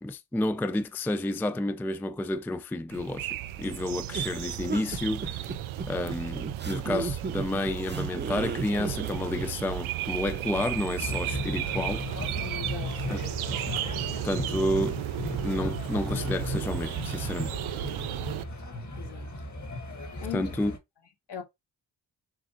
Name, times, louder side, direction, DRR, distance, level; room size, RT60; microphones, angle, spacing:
voice 1, 0.0-5.5 5.9-12.0 13.1-13.2 14.2-15.0 15.4-17.5 20.3-20.8, left 1 dB, 5° left, 0.3 m, -30 dB
sound 1, 2.9-18.4, right 13 dB, 90° right, 0.5 m, -34 dB
sound 2, 4.1-9.5, right 4 dB, 25° right, 0.7 m, -35 dB
sound 3, 11.0-20.8, left 2 dB, 35° left, 1.6 m, -36 dB
voice 2, 12.4-13.1 19.0-19.3 20.2-20.5 21.3-21.4, left 9 dB, 60° left, 1.7 m, -39 dB
6.5 x 2.4 x 2.9 m
cardioid pair, 60°, 47 cm